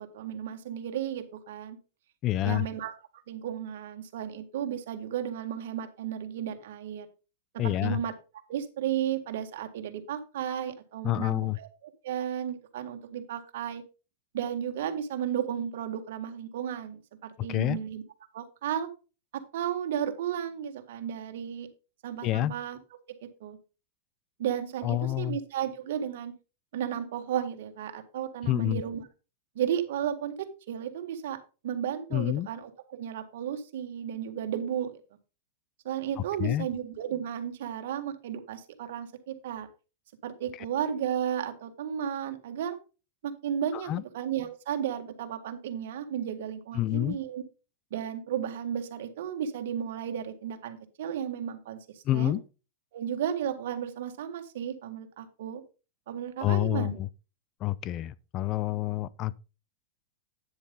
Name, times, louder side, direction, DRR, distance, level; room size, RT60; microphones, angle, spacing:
voice 1, 0.0-1.8 2.4-2.9 3.3-7.1 7.6-8.1 8.5-11.7 12.0-13.8 14.3-18.0 18.3-18.9 19.3-21.7 22.0-22.8 23.2-23.6 24.4-26.3 26.7-29.0 29.5-31.4 31.6-34.9 35.8-39.7 40.2-42.8 43.2-47.4 47.9-51.8 52.1-52.3 52.9-55.6 56.1-57.0, right 9 dB, 70° right, 1.8 m, -33 dB
voice 2, 2.2-2.7 7.6-8.0 11.0-11.6 17.5-17.8 22.2-22.5 24.8-25.4 28.4-28.8 32.1-32.5 36.2-36.7 40.5-40.7 43.7-44.0 46.7-47.2 52.0-52.4 56.4-57.1 57.6-59.4, left 15 dB, 35° left, 0.5 m, -28 dB
9.8 x 7.3 x 3.9 m
supercardioid pair, 135°, 0 cm